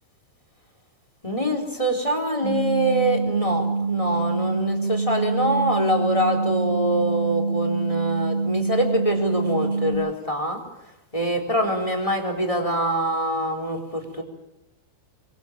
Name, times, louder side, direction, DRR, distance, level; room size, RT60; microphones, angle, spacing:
voice 1, 1.2-10.6 11.1-14.2, right 1 dB, 10° left, 5 dB, 3.3 m, -24 dB
sound 1, 2.4-9.9, right 3 dB, 60° right, 9.2 m, -25 dB
24.5 x 24.0 x 7.5 m, 0.90 s
omnidirectional pair, 5.5 m